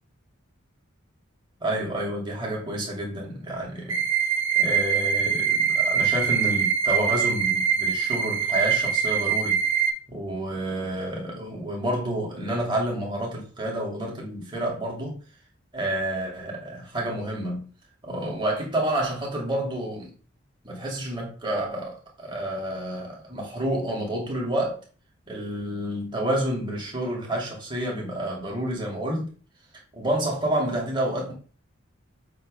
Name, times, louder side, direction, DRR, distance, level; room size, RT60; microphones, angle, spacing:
voice 1, 1.6-4.0 4.5-9.6 10.1-15.2 15.7-17.6 18.0-20.1 20.6-24.8 25.3-29.3 29.9-31.3, right 1 dB, 20° right, 2.4 m, -29 dB
sound 1, 3.9-9.9, right 7 dB, 65° right, 1.3 m, -23 dB
7.6 x 3.1 x 5.2 m
head